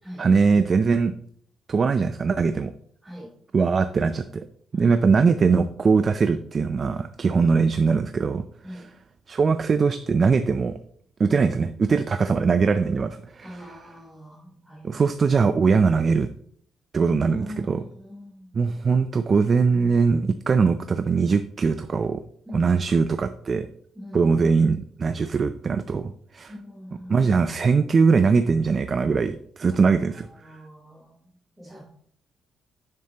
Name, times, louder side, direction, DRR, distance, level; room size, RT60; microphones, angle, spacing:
voice 1, 0.2-1.1 1.7-2.7 3.5-4.5 4.7-8.4 9.3-10.8 11.2-13.6 14.8-16.3 16.9-17.8 18.5-22.2 22.5-23.7 24.1-26.5 27.1-30.5, right 5 dB, 40° right, 11 dB, 0.4 m, -21 dB
voice 2, 13.4-15.0 17.2-18.6 22.4-22.7 23.9-24.3 26.5-27.3 29.7-29.9 30.2-31.3 31.6-31.8, equal, 5° right, -6 dB, 3.4 m, -41 dB
9.6 x 6.9 x 2.9 m, 0.63 s
cardioid pair, 90°, 0 cm